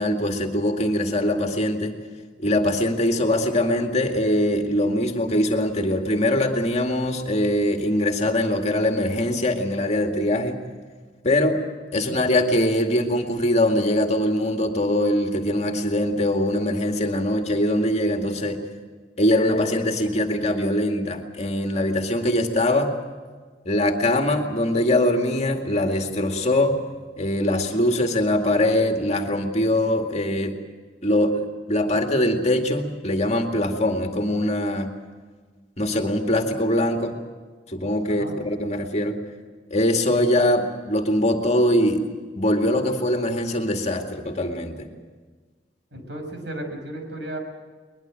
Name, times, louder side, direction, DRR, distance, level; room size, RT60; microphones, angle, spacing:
voice 1, 0.0-1.9 2.4-10.6 11.2-11.6 11.9-18.6 19.2-23.0 23.7-26.8 27.2-30.6 31.0-34.9 35.8-37.2 37.7-39.2 39.7-42.0 42.3-44.9, left 1 dB, 40° left, 3 dB, 2.2 m, -22 dB
voice 2, 45.9-47.4, right 1 dB, 70° right, 4 dB, 6.2 m, -34 dB
22.5 x 21.5 x 7.7 m, 1.4 s
head